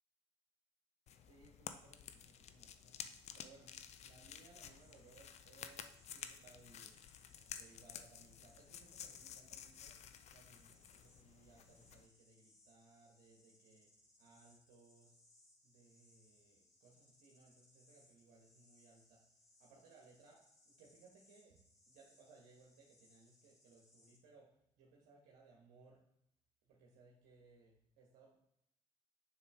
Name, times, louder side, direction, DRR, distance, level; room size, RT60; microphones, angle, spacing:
sound 1, 1.1-12.1, left 8 dB, 50° left, 0.6 m, -53 dB
voice 1, 1.2-3.0 3.3-7.0 7.6-13.9 14.2-15.1 15.6-19.2 19.6-26.0 26.6-28.4, right 4 dB, 65° right, -2 dB, 1.4 m, -65 dB
sound 2, 4.7-24.2, left 1 dB, 20° left, 2.2 m, -70 dB
6.7 x 6.4 x 3.6 m, 0.78 s
figure-of-eight pair, 55°, 15 cm